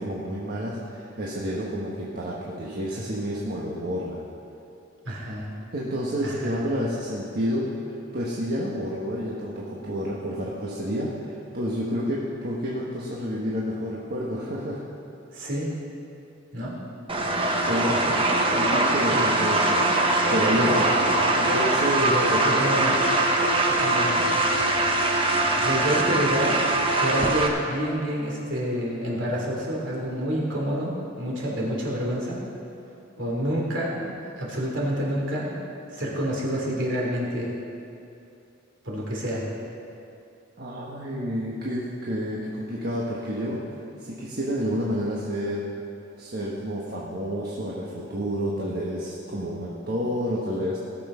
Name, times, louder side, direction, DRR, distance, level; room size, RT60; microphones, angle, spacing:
voice 1, 0.0-4.2 5.7-14.8 17.4-18.2 18.5-20.9 21.3-22.7 40.6-43.6 44.0-45.7 46.2-50.8, equal, 50° right, -5 dB, 1.4 m, -29 dB
voice 2, 5.0-5.5 6.2-6.6 15.3-15.7 16.5-16.8 17.6-18.2 19.1-19.3 20.3-20.9 21.9-22.9 23.8-24.2 25.3-26.5 27.0-32.4 33.2-35.6 35.9-37.5 38.8-39.4, equal, 70° right, -4 dB, 3.2 m, -28 dB
sound 1, 17.1-27.5, right 2 dB, 30° right, 1.2 m, -22 dB
18.0 x 7.2 x 5.6 m, 2.7 s
head